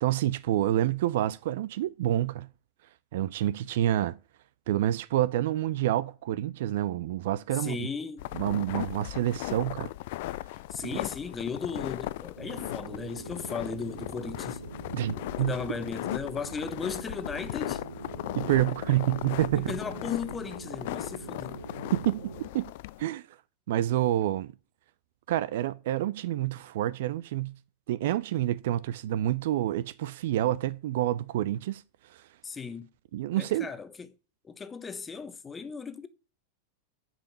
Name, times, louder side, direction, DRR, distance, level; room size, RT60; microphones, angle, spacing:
voice 1, 0.0-2.5 3.1-4.2 4.7-7.9 8.3-9.9 10.8-11.0 14.9-15.5 18.4-19.8 21.9-22.7 23.0-23.2 23.7-24.5 25.3-27.6 27.9-31.8 33.1-33.7, right 13 dB, 55° right, 0.4 m, -28 dB
voice 2, 7.5-8.2 10.7-14.6 15.4-17.8 19.5-21.6 32.4-32.9 33.4-34.1 34.5-36.1, left 5 dB, 15° left, 1.0 m, -36 dB
sound 1, 8.2-23.0, left 18 dB, 50° left, 0.3 m, -37 dB
sound 2, 12.4-22.5, right 3 dB, 80° right, 0.9 m, -43 dB
7.1 x 5.5 x 6.9 m
figure-of-eight pair, 90°, 0 cm